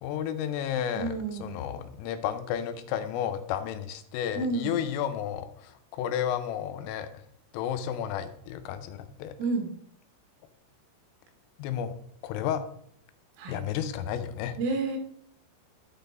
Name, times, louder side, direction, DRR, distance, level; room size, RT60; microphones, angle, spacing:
voice 1, 0.0-7.2 7.5-9.3 11.6-11.9 12.2-12.6 13.5-14.6, left 9 dB, 85° left, 10 dB, 3.3 m, -32 dB
voice 2, 1.0-1.5 4.4-4.7 9.4-9.7 13.4-13.6 14.6-15.0, right 3 dB, 85° right, 3 dB, 4.0 m, -30 dB
12.5 x 4.2 x 3.4 m, 0.68 s
omnidirectional pair, 5.8 m